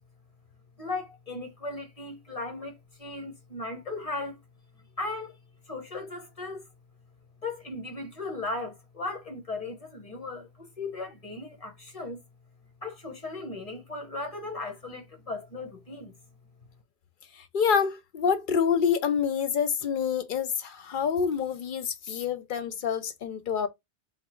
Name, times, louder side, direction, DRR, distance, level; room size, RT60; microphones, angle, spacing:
voice 1, 0.8-4.4 5.0-5.3 5.7-6.6 7.4-12.2 12.8-16.1, left 2 dB, 35° left, 1.2 m, -37 dB
voice 2, 17.4-23.7, left 7 dB, 60° left, 0.7 m, -27 dB
3.6 x 2.3 x 4.3 m
omnidirectional pair, 1.1 m